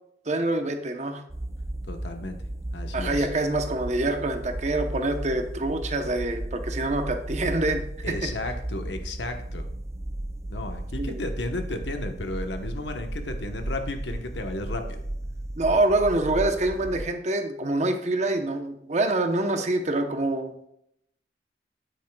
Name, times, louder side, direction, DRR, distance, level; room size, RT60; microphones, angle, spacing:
voice 1, 0.3-1.2 2.9-8.3 11.0-11.2 15.6-20.7, right 2 dB, 40° right, 6 dB, 0.8 m, -26 dB
sound 1, 1.3-17.1, right 1 dB, 15° right, 0.3 m, -34 dB
voice 2, 1.8-2.4 2.7-3.3 8.0-9.7 10.5-15.0, left 2 dB, 80° left, 6 dB, 1.0 m, -34 dB
9.1 x 8.4 x 2.3 m, 0.77 s
head